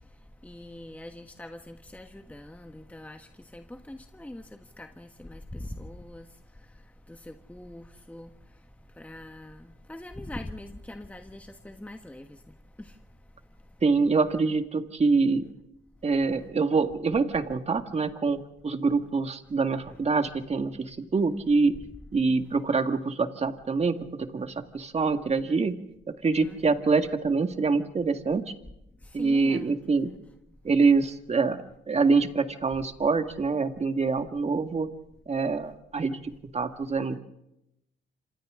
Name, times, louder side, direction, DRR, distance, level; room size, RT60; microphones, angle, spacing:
voice 1, 0.4-6.3 7.1-8.3 9.0-12.4 12.8-12.9 19.8-20.0 26.4-26.8 29.0-30.2, left 1 dB, 5° left, 1.3 m, -43 dB
voice 2, 13.8-15.5 16.0-21.8 22.1-25.8 26.1-28.5 29.1-30.1 30.6-34.9 35.3-37.2, right 4 dB, 35° right, 1.9 m, -25 dB
26.5 x 26.5 x 3.8 m
cardioid pair, 90°, 20 cm